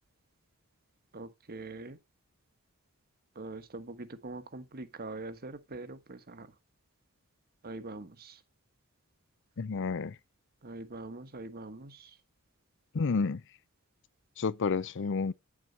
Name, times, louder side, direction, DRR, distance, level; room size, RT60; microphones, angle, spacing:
voice 1, 1.1-2.0 3.3-6.5 7.6-8.4 10.6-12.1, right 2 dB, 45° right, 1.4 m, -43 dB
voice 2, 9.6-10.2 12.9-13.4 14.4-15.3, left 4 dB, 60° left, 0.5 m, -30 dB
10.0 x 7.3 x 4.1 m
head